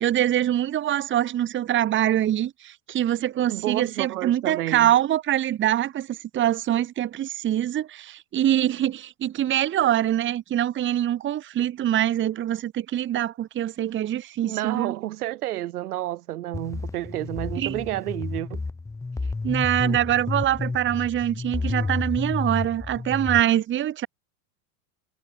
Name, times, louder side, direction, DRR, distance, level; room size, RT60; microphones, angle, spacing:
voice 1, 0.0-14.9 17.6-17.8 19.4-24.1, right 12 dB, 25° right, 1.7 m, -24 dB
voice 2, 3.5-4.9 14.4-18.6, right 15 dB, 90° right, 5.8 m, -30 dB
sound 1, 16.5-23.4, left 3 dB, 5° left, 1.1 m, -30 dB
supercardioid pair, 145°, 44 cm